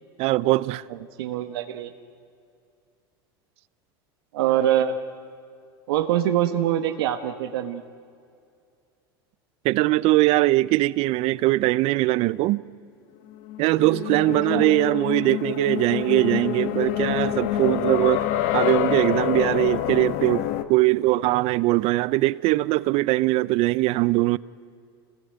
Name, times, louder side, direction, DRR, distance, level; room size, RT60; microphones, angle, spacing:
voice 1, 0.2-0.8 9.6-12.6 13.6-18.3 18.5-24.4, right 19 dB, 50° right, 0.6 m, -21 dB
voice 2, 1.2-1.9 4.3-5.0 5.9-7.8 14.5-14.7, right 11 dB, 75° right, 1.3 m, -24 dB
sound 1, 13.3-20.6, left 12 dB, 60° left, 1.5 m, -26 dB
26.0 x 20.5 x 9.3 m
hypercardioid pair, 105°, 13 cm